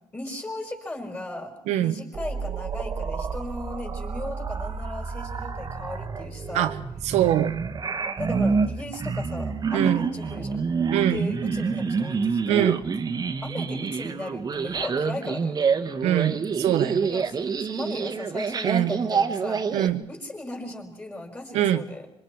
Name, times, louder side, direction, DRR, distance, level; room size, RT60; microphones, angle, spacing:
voice 1, 0.1-6.7 8.2-10.6 11.0-12.7 13.4-15.7 17.0-19.8 20.1-22.1, left 2 dB, 20° left, 1 dB, 5.4 m, -37 dB
voice 2, 1.7-2.0 6.5-6.7 7.1-7.5 9.7-10.1 10.9-11.2 12.5-12.8 16.0-17.1 18.6-19.0 19.7-20.0 21.5-21.8, right 12 dB, 90° right, 9 dB, 1.0 m, -23 dB
sound 1, 2.1-19.9, right 5 dB, 35° right, 1.3 m, -28 dB
26.0 x 24.0 x 4.7 m, 0.84 s
cardioid pair, 100°, 11 cm